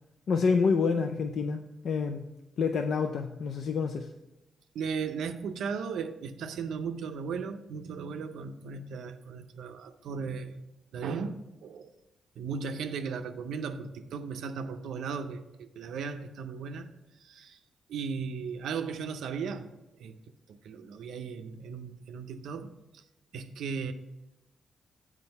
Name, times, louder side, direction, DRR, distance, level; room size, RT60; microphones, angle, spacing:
voice 1, 0.3-2.3 2.6-4.1, left 5 dB, 65° left, 6 dB, 0.4 m, -28 dB
voice 2, 4.7-10.6 10.9-11.4 11.6-11.9 12.4-16.9 17.2-17.6 17.9-20.2 20.5-23.0 23.3-23.9, right 5 dB, 80° right, 8 dB, 0.5 m, -36 dB
7.7 x 4.7 x 5.5 m, 0.96 s
supercardioid pair, 50°, 0 cm